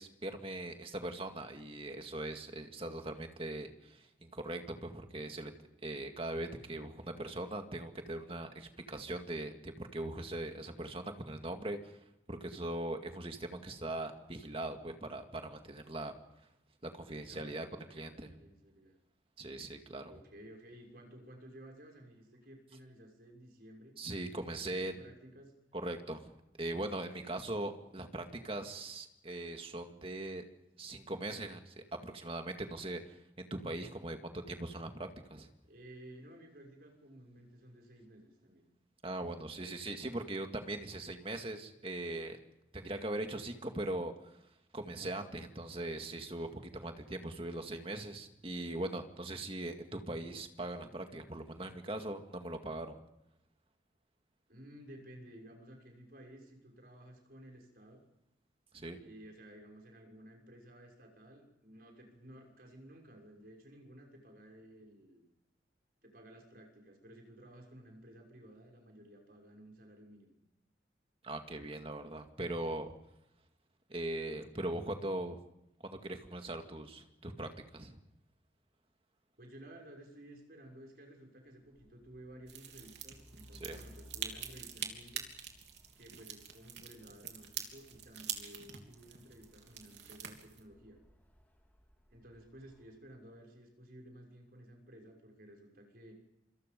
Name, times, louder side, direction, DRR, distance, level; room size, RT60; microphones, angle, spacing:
voice 1, 0.0-5.5 5.8-16.1 16.8-18.4 19.4-20.1 24.0-24.9 25.7-30.4 30.8-35.5 39.0-42.4 42.7-44.4 44.7-53.0 58.7-59.0 71.2-73.0 73.9-75.4 75.8-78.0 83.6-83.8, right 1 dB, 30° right, 5 dB, 2.2 m, -40 dB
voice 2, 17.1-19.0 20.0-24.0 24.6-25.5 35.6-38.7 54.5-58.0 59.0-65.2 66.0-70.3 79.4-85.2 85.9-91.0 92.1-96.1, right 1 dB, 55° right, 1 dB, 6.3 m, -55 dB
Truck, 81.7-93.0, left 1 dB, 10° left, 2.6 m, -61 dB
sound 1, 82.5-90.6, right 9 dB, 75° right, 3.4 m, -45 dB
27.0 x 26.0 x 5.4 m, 0.88 s
head